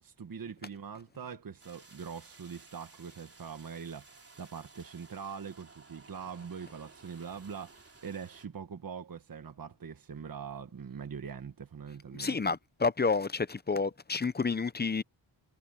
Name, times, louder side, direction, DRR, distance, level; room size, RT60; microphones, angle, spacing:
voice 1, 0.0-12.4, right 6 dB, 45° right, 1.3 m, -43 dB
sound 1, 1.6-8.5, right 3 dB, 30° right, 3.7 m, -56 dB
voice 2, 12.1-15.0, left 4 dB, 20° left, 0.5 m, -30 dB
wide cardioid pair, 150°, 48 cm